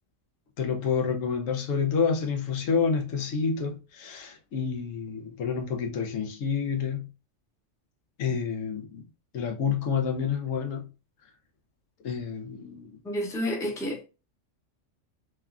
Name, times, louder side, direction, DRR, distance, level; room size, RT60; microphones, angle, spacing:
voice 1, 0.6-7.1 8.2-9.0 9.3-10.9 12.0-13.0, left 6 dB, 85° left, 1.1 m, -28 dB
voice 2, 13.0-14.0, equal, 5° left, 0.5 m, -30 dB
3.1 x 2.3 x 2.3 m
omnidirectional pair, 1.3 m